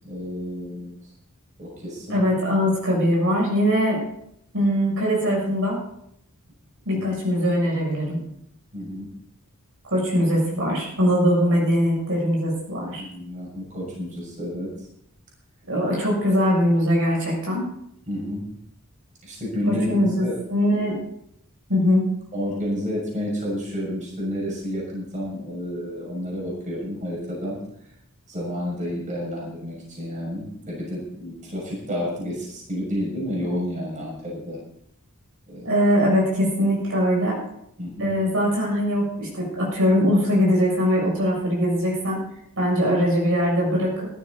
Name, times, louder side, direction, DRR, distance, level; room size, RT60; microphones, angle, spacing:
voice 1, 0.0-1.1 1.6-2.2 6.9-7.0 8.7-9.1 13.0-14.9 16.3-16.4 18.1-18.5 19.2-20.4 22.3-27.9 28.3-34.6 35.5-35.7 37.8-38.1, equal, 35° right, -3 dB, 6.6 m, -30 dB
voice 2, 2.1-4.0 4.5-5.8 6.8-8.2 9.8-13.0 15.7-17.7 19.7-20.9 21.7-22.0 35.6-37.4 38.0-42.2 42.6-44.1, equal, 65° right, -2 dB, 7.0 m, -21 dB
16.0 x 14.0 x 4.0 m, 0.74 s
head